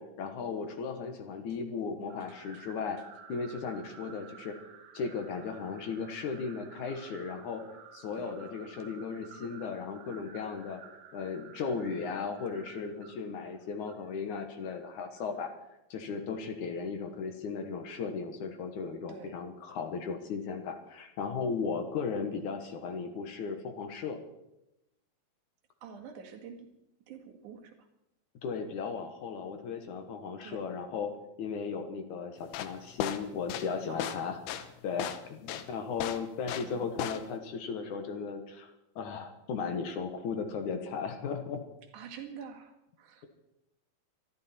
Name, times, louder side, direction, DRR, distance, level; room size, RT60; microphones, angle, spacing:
voice 1, 0.0-3.0 3.3-4.6 4.9-7.6 7.9-10.8 11.1-15.5 15.9-24.2 28.4-31.1 31.4-38.7 39.0-41.6, left 5 dB, 65° left, 6 dB, 2.4 m, -36 dB
sound 1, 2.1-15.4, right 7 dB, 75° right, 3.4 m, -53 dB
voice 2, 25.8-26.7 27.1-27.9 30.4-30.6 33.9-34.3 36.5-36.9 41.9-43.3, right 7 dB, 60° right, 4 dB, 3.0 m, -47 dB
sound 2, 32.4-36.7 37.0-37.4, left 10 dB, 90° left, 3.0 m, -35 dB
23.5 x 13.0 x 4.4 m, 0.88 s
omnidirectional pair, 4.4 m